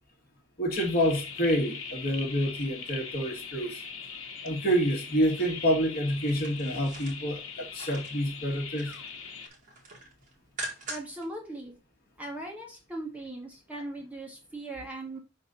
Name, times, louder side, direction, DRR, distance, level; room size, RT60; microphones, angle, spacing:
voice 1, 0.6-3.8 4.4-9.0, equal, 45° left, 1.5 m, -28 dB
sound 1, 0.7-9.5, left 5 dB, 70° left, 1.1 m, -41 dB
sound 2, 6.1-8.2 8.6-9.1 9.4-11.3 11.6-11.7, right 2 dB, 40° right, 1.8 m, -42 dB
voice 2, 10.9-11.8 12.2-15.2, right 1 dB, 5° right, 1.2 m, -39 dB
5.4 x 3.8 x 5.4 m
head